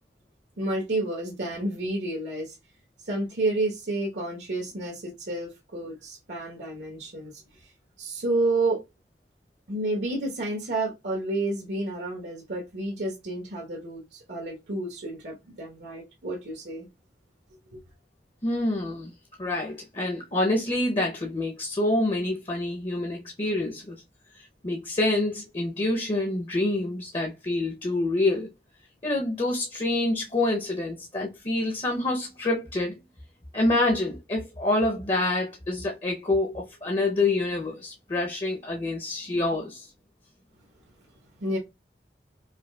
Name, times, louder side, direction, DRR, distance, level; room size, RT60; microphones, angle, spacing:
voice 1, 0.6-2.6 3.0-7.7 8.0-8.8 9.7-16.9 17.7-17.8 41.4-41.6, right 2 dB, 85° right, 1.0 m, -30 dB
voice 2, 18.4-19.1 19.4-24.0 24.4-28.5 29.0-32.9 33.5-39.9, left 2 dB, 30° left, 0.6 m, -27 dB
5.0 x 2.3 x 2.2 m
head